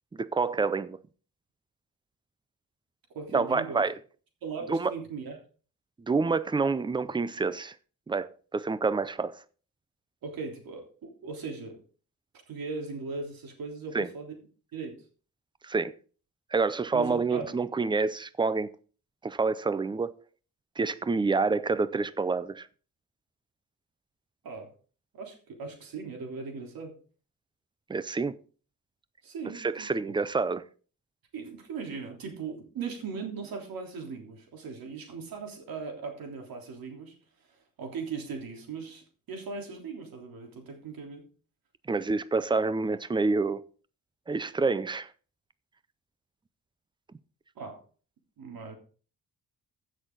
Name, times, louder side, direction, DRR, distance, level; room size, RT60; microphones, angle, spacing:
voice 1, 0.1-1.0 3.3-3.9 4.7-4.9 6.1-7.7 8.1-9.4 13.9-14.1 15.6-15.9 16.5-18.7 19.2-20.1 20.8-22.7 27.9-28.4 29.6-30.6 41.9-43.6 44.3-45.1, right 4 dB, 15° right, 0.4 m, -27 dB
voice 2, 3.1-3.8 4.4-5.4 10.2-11.8 12.5-14.4 14.7-15.0 16.9-17.6 24.4-24.7 25.1-26.9 29.2-30.1 31.3-37.1 37.8-41.3 47.5-47.8 48.4-48.8, right 4 dB, 85° right, 3.4 m, -39 dB
15.0 x 6.4 x 3.9 m
wide cardioid pair, 180°, 34 cm